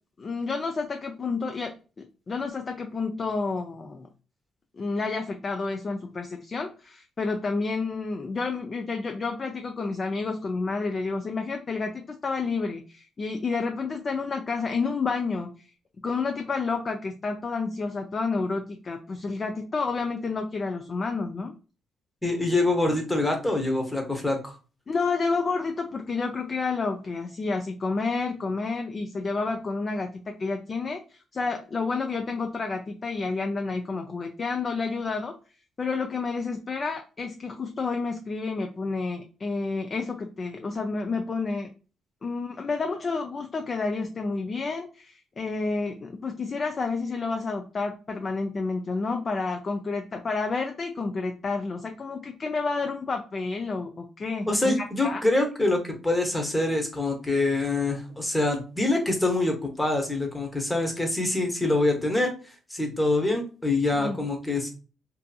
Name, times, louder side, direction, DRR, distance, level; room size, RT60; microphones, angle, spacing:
voice 1, 0.2-4.1 4.7-15.7 16.0-21.5 24.9-35.4 35.8-41.7 42.2-55.2 63.9-64.2, left 4 dB, 35° left, 4 dB, 0.4 m, -30 dB
voice 2, 22.2-24.5 54.5-62.3 62.7-64.8, left 2 dB, 10° left, 3 dB, 0.8 m, -25 dB
2.6 x 2.5 x 2.3 m, 0.35 s
cardioid pair, 90°, 0 cm